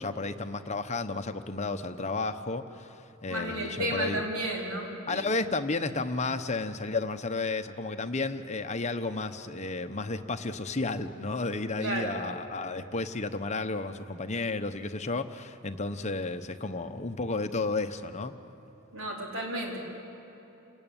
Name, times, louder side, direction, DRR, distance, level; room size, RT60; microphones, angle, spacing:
voice 1, 0.0-4.3 5.1-18.3, left 3 dB, 35° left, 8 dB, 0.9 m, -32 dB
voice 2, 3.3-5.2 11.8-12.2 18.9-19.8, right 1 dB, 70° right, -1 dB, 4.6 m, -32 dB
28.5 x 18.0 x 9.0 m, 3.0 s
head